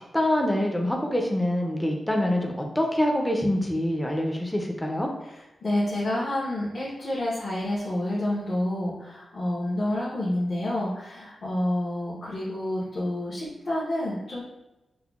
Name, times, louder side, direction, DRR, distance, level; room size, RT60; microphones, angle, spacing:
voice 1, 0.1-5.1, left 1 dB, 5° left, 1 dB, 0.4 m, -25 dB
voice 2, 5.6-14.4, left 1 dB, 55° left, -8 dB, 0.8 m, -28 dB
5.5 x 2.0 x 2.3 m, 0.99 s
wide cardioid pair, 140°, 0 cm